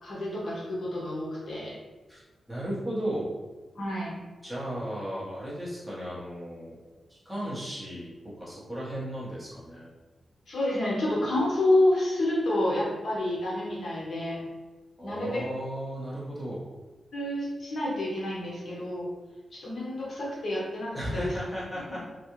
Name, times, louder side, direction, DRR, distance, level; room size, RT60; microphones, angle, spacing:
voice 1, 0.0-1.7 3.7-4.1 10.5-14.4 15.0-15.4 17.1-19.1 19.5-21.4 21.9-22.0, left 1 dB, 60° left, -5 dB, 1.0 m, -28 dB
voice 2, 2.5-3.3 4.4-6.8 7.1-9.9 15.0-16.6 20.9-22.0, equal, 5° right, -8 dB, 1.0 m, -35 dB
3.4 x 2.4 x 2.9 m, 1.2 s
wide cardioid pair, 120°, 0 cm